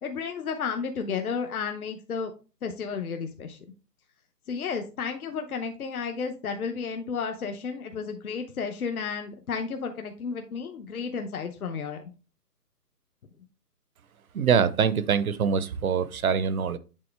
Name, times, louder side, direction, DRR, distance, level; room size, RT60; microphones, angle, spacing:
voice 1, 0.0-2.3 2.6-3.6 4.5-12.0, left 5 dB, 65° left, 0.9 m, -32 dB
voice 2, 14.3-16.8, right 7 dB, 60° right, 0.7 m, -24 dB
7.6 x 3.9 x 3.3 m
hypercardioid pair, 165°, 48 cm